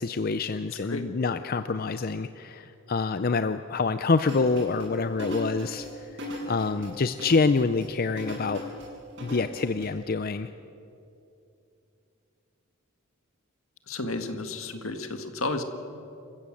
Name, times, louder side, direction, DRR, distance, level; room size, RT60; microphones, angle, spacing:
voice 1, 0.0-6.1 6.5-8.6 9.2-10.5, left 4 dB, 45° left, 11 dB, 0.5 m, -26 dB
sound 1, 4.2-9.9, left 1 dB, 60° right, 7.6 m, -38 dB
voice 2, 13.9-15.6, left 2 dB, 75° left, 7 dB, 1.8 m, -32 dB
27.5 x 15.0 x 7.7 m, 2.7 s
head